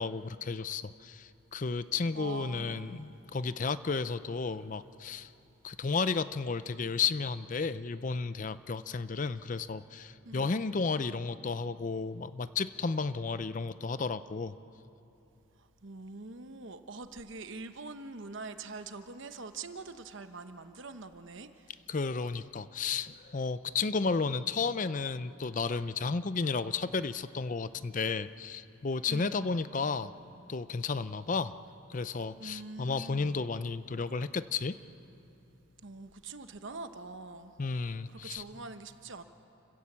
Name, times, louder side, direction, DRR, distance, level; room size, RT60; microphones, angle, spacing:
voice 1, 0.0-5.3 5.6-14.5 21.9-30.1 30.5-31.5 31.9-34.8 37.6-38.4, left 4 dB, 35° left, 14 dB, 0.5 m, -33 dB
voice 2, 2.2-3.1 10.2-10.6 15.8-21.7 29.1-29.5 32.4-33.4 35.8-37.5 38.1-39.2, right 3 dB, 60° right, 9 dB, 1.0 m, -44 dB
29.0 x 16.5 x 7.4 m, 2.8 s
head